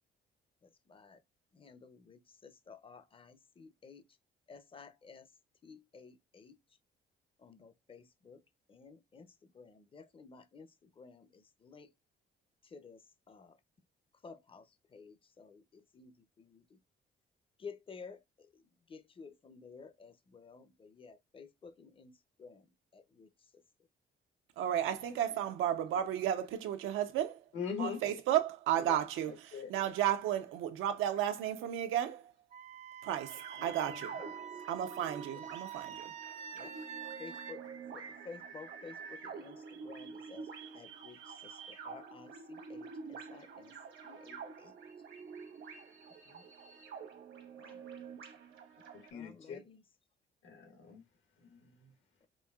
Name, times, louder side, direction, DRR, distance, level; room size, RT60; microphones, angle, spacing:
voice 1, 0.9-1.2 1.5-4.0 4.5-5.3 5.6-6.6 7.4-8.4 8.7-9.3 9.5-11.9 12.7-13.0 13.3-13.6 14.2-14.7 14.9-15.6 15.9-16.6 17.6-18.2 18.9-22.6 22.9-23.3 33.6-34.3 36.5-36.7 37.2-37.6 37.9-40.5 40.7-41.6 41.8-43.7 44.0-44.7 47.6-47.8 49.1-49.8, left 5 dB, 25° left, 0.5 m, -53 dB
voice 2, 24.6-27.4 27.8-32.3 33.0-34.2 34.7-36.1, right 11 dB, 90° right, 0.6 m, -33 dB
voice 3, 27.5-28.0 28.9-29.0 29.3-29.7 46.2-46.4 48.9-49.6 50.4-51.0 51.4-51.9, left 6 dB, 75° left, 1.3 m, -41 dB
Wind instrument woodwind instrument, 32.5-37.6, right 8 dB, 35° right, 0.4 m, -46 dB
sound 1, 33.3-49.1, right 5 dB, 75° right, 1.1 m, -48 dB
5.1 x 2.6 x 2.3 m
cardioid pair, 90°, 20 cm